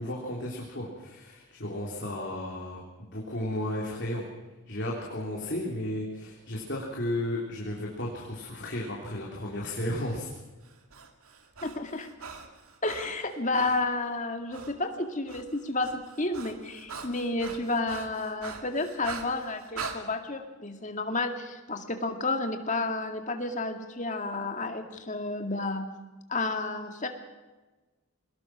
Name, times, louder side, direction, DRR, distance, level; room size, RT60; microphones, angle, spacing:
voice 1, 0.0-4.2 4.7-10.3, left 1 dB, 50° left, -2 dB, 3.5 m, -34 dB
Breathing, 10.6-13.8 14.5-14.7 15.0-20.0, right 4 dB, 75° right, 2.4 m, -42 dB
voice 2, 11.6-12.1 12.8-25.8 26.3-27.1, left 2 dB, 35° left, 5 dB, 2.1 m, -31 dB
23.0 x 20.0 x 6.1 m, 1.2 s
head